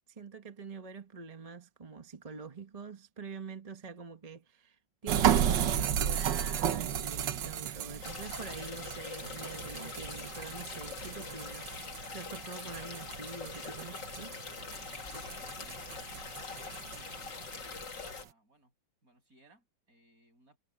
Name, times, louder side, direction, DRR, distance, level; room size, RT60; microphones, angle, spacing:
voice 1, 0.2-11.8 12.1-14.3, right 5 dB, 25° right, 0.9 m, -46 dB
sound 1, 5.1-18.2, right 9 dB, 65° right, 1.6 m, -34 dB
sound 2, 8.0-18.2, left 5 dB, 60° left, 2.9 m, -43 dB
voice 2, 14.7-15.9 16.4-18.7 19.0-20.6, right 1 dB, 45° right, 8.4 m, -63 dB
omnidirectional pair, 2.2 m